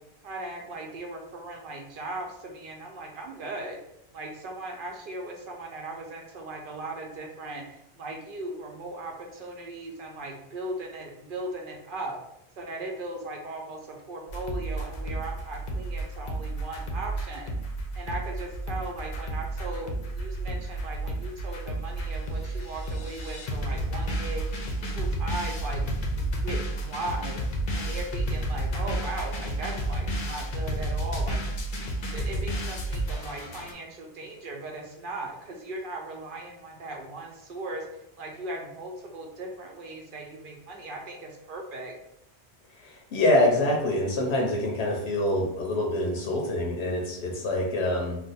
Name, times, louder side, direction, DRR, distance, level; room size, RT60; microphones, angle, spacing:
voice 1, 0.2-3.8 4.1-12.2 12.6-17.5 17.9-27.4 27.7-31.4 32.1-41.9, right 2 dB, 60° right, 1 dB, 0.7 m, -38 dB
sound 1, 14.3-33.7, right 1 dB, 55° left, 0.7 m, -31 dB
voice 2, 42.8-48.2, left 1 dB, 85° left, 0 dB, 0.9 m, -25 dB
2.5 x 2.2 x 4.0 m, 0.78 s
omnidirectional pair, 1.1 m